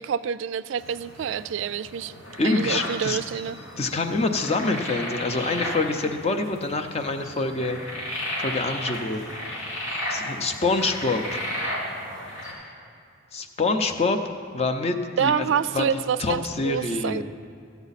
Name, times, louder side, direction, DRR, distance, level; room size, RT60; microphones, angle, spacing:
voice 1, 0.0-2.1 2.4-3.6 15.2-17.2, right 7 dB, 65° right, 15 dB, 0.3 m, -27 dB
sound 1, 0.8-12.5, left 1 dB, 85° left, 3.0 m, -34 dB
voice 2, 2.4-3.2 3.8-7.8 8.4-9.2 10.1-11.4 13.3-14.2 14.5-15.5 15.7-17.2, left 3 dB, 30° left, 6 dB, 0.6 m, -26 dB
14.5 x 8.1 x 4.1 m, 2.4 s
head